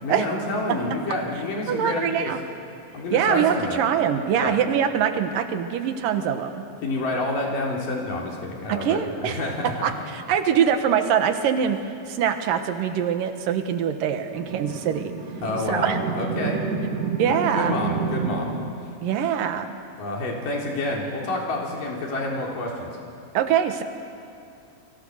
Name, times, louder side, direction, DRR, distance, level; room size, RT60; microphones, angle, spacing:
voice 1, 0.0-2.3 2.9-3.8 4.3-4.6 6.8-9.8 15.4-16.6 17.3-18.5 20.0-22.9, left 2 dB, 80° left, -1 dB, 5.2 m, -28 dB
voice 2, 1.7-2.4 3.1-6.6 8.7-9.4 9.6-11.8 12.1-15.1 15.7-16.0 17.2-17.7 19.0-19.8 23.3-23.8, right 8 dB, 90° right, 7 dB, 3.0 m, -23 dB
sound 1, 14.3-18.7, right 5 dB, 70° right, 3.9 m, -29 dB
29.5 x 23.0 x 6.5 m, 2.5 s
omnidirectional pair, 3.8 m